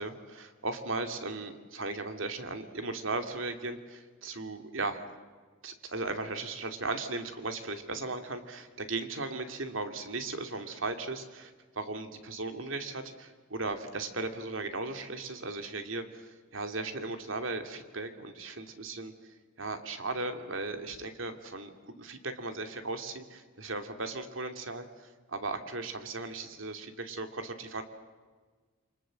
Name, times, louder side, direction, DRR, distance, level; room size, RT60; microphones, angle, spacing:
voice 1, 0.0-5.0 5.6-11.5 11.8-19.1 19.6-27.8, right 3 dB, 70° right, 7 dB, 2.7 m, -37 dB
28.5 x 25.0 x 7.7 m, 1.4 s
head